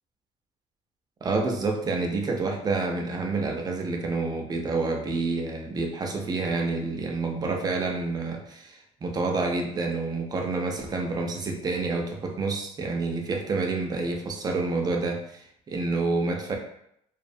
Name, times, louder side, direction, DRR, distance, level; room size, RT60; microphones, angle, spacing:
voice 1, 1.2-16.6, right 3 dB, 25° right, 2 dB, 0.4 m, -28 dB
2.4 x 2.1 x 2.6 m, 0.74 s
cardioid pair, 140°, 15 cm